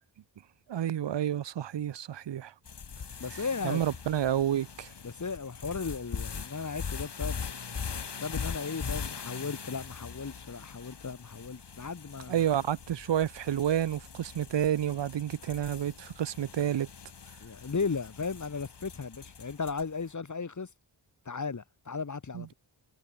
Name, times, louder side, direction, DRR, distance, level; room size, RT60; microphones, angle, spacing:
voice 1, 0.7-2.5 3.6-4.9 12.3-16.9 22.3-22.4, right 10 dB, 70° right, 0.7 m, -29 dB
sound 1, 2.7-20.0, left 6 dB, 65° left, 3.5 m, -41 dB
voice 2, 3.2-3.8 5.0-7.4 8.2-12.5 17.4-20.7 21.3-22.5, left 5 dB, 40° left, 1.9 m, -36 dB
wide cardioid pair, 100°, 44 cm